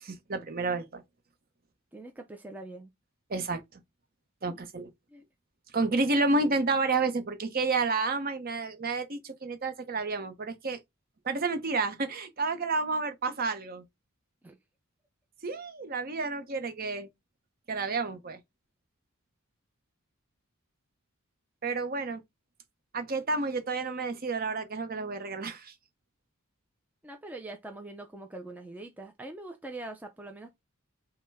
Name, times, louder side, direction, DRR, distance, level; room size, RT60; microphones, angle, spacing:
voice 1, 0.0-1.0 3.3-3.8 4.4-4.9 5.7-10.8 11.2-13.8 15.4-17.1 17.7-18.4 21.6-22.2 22.9-25.7, right 3 dB, 45° right, 0.8 m, -30 dB
voice 2, 1.9-2.9 4.5-4.7 5.1-5.2 6.4-6.6 14.4-14.6 27.0-30.5, right 2 dB, 5° right, 0.5 m, -43 dB
5.4 x 2.2 x 3.4 m
head